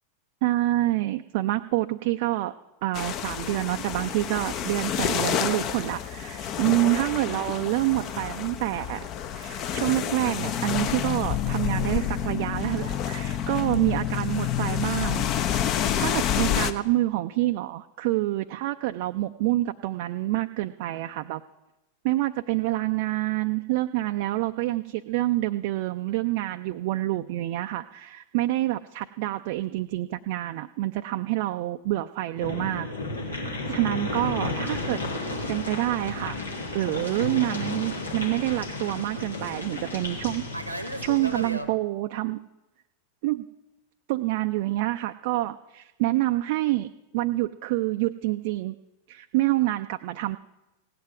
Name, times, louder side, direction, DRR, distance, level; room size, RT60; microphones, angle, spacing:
voice 1, 0.4-2.5 2.8-9.1 9.3-15.7 16.0-21.4 22.0-32.9 33.2-35.0 35.5-36.4 36.7-40.4 41.0-42.4 43.2-43.5 44.1-48.8 49.1-50.4, right 17 dB, 50° right, 7 dB, 0.4 m, -27 dB
sound 1, 2.9-16.7, left 10 dB, 35° left, 0.7 m, -28 dB
sound 2, 32.4-41.5, left 2 dB, 75° left, 1.8 m, -33 dB
Fixed-wing aircraft airplane, 35.2-41.7, right 1 dB, 85° right, 0.9 m, -40 dB
16.5 x 9.4 x 6.0 m, 0.99 s
figure-of-eight pair, 90°, 0 cm